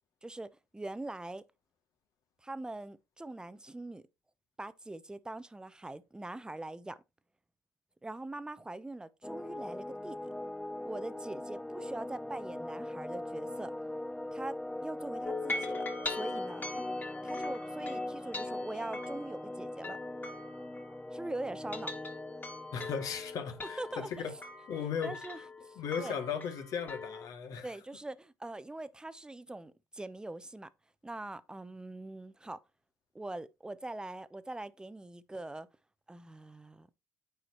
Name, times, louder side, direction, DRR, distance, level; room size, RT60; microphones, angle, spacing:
voice 1, 0.2-1.4 2.4-4.0 4.6-7.0 8.0-10.3 10.8-13.7 14.3-15.8 16.1-16.8 17.2-20.0 21.1-21.9 23.8-24.3 25.0-26.2 27.6-30.7 31.0-32.6 33.1-35.7 36.1-36.9, right 2 dB, 10° right, 0.9 m, -42 dB
sound 1, 9.2-24.4, left 1 dB, 5° left, 0.4 m, -41 dB
sound 2, 15.2-21.2 21.6-27.3, left 3 dB, 25° left, 2.7 m, -42 dB
voice 2, 22.7-24.3 24.7-25.1 25.8-27.7, left 7 dB, 65° left, 2.3 m, -36 dB
9.0 x 5.0 x 4.5 m
supercardioid pair, 70°, 7 cm